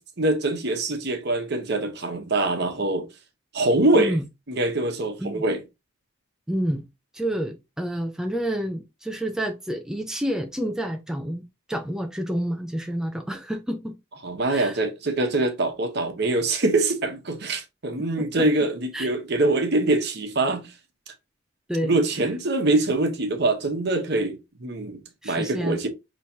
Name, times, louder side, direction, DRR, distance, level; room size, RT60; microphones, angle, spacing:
voice 1, 0.2-3.1 3.5-4.2 4.5-5.6 14.2-20.7 21.8-25.9, right 2 dB, 55° right, 1.0 m, -24 dB
voice 2, 6.5-6.8 7.1-13.9 14.5-14.8 18.4-18.5 18.9-19.1 21.7-22.0 25.2-25.8, right 1 dB, 5° right, 0.4 m, -29 dB
5.7 x 3.1 x 2.7 m
head